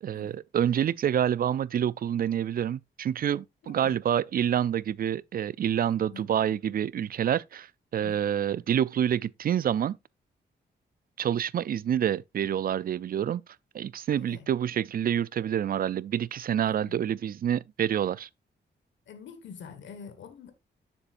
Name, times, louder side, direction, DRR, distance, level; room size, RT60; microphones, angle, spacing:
voice 1, 0.0-7.7 7.9-10.0 11.2-13.4 13.7-18.3, right 9 dB, 50° right, 0.4 m, -27 dB
voice 2, 3.6-3.9 6.1-6.3 8.0-8.2 14.1-14.5 16.8-17.1 19.1-20.5, left 6 dB, 90° left, 1.4 m, -46 dB
9.7 x 7.1 x 2.5 m
cardioid pair, 100°, 19 cm